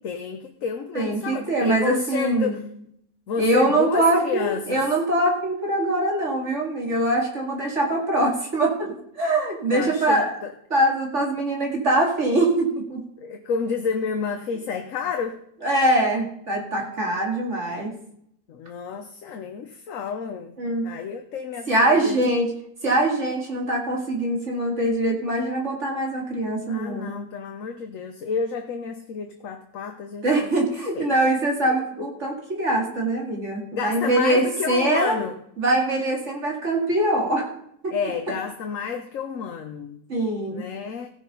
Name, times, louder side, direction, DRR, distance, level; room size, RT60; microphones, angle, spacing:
voice 1, 0.0-2.6 3.3-4.8 9.7-10.5 13.2-15.4 18.5-20.6 20.8-22.2 26.7-30.5 30.9-31.1 33.7-35.3 37.9-40.0 40.5-41.1, left 6 dB, 65° left, 5 dB, 1.2 m, -30 dB
voice 2, 0.9-2.6 3.4-10.3 10.7-13.0 15.6-17.9 20.6-20.9 21.7-22.5 22.8-27.1 30.2-35.2 35.6-37.5 37.8-38.0 40.1-40.7, right 1 dB, 50° right, -1 dB, 2.7 m, -23 dB
16.0 x 6.1 x 5.3 m, 0.70 s
omnidirectional pair, 1.6 m